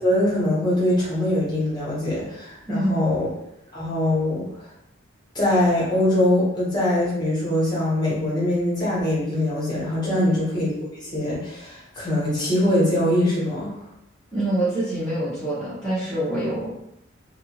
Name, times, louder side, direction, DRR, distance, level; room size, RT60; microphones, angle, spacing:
voice 1, 0.0-3.3 3.7-4.4 5.3-13.7, left 1 dB, 20° left, -7 dB, 1.1 m, -22 dB
voice 2, 2.6-3.1 10.1-10.3 14.3-16.7, right 1 dB, 5° left, -13 dB, 0.8 m, -25 dB
2.6 x 2.4 x 2.9 m, 0.81 s
head